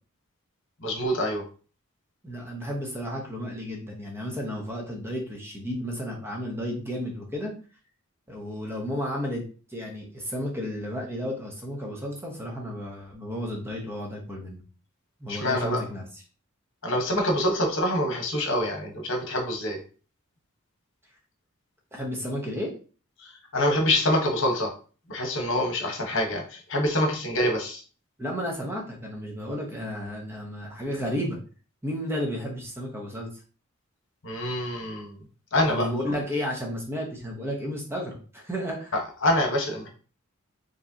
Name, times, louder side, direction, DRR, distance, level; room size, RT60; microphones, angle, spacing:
voice 1, 0.8-1.4 15.3-15.8 16.8-19.8 23.2-24.7 25.1-27.8 34.2-35.2 35.5-35.9 39.2-39.9, left 1 dB, 60° left, 2 dB, 1.2 m, -26 dB
voice 2, 2.2-7.5 8.3-9.4 9.7-14.6 15.2-16.2 21.9-22.7 28.2-31.4 31.8-33.3 35.6-38.9, equal, 10° right, 0 dB, 0.9 m, -32 dB
4.9 x 3.2 x 2.8 m, 0.38 s
head